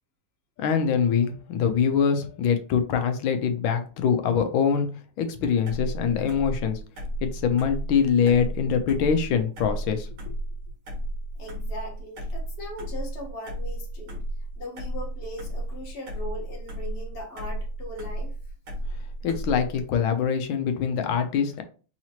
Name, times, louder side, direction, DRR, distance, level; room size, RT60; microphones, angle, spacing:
voice 1, 0.6-4.9 5.2-6.8 7.2-10.3 19.2-21.6, left 7 dB, 70° left, 7 dB, 1.3 m, -24 dB
sound 1, 5.7-19.8, right 1 dB, 85° right, 2.4 m, -33 dB
voice 2, 11.4-14.2 14.6-18.3, left 1 dB, 35° left, -2 dB, 1.3 m, -39 dB
4.8 x 2.9 x 2.9 m, 0.37 s
omnidirectional pair, 2.4 m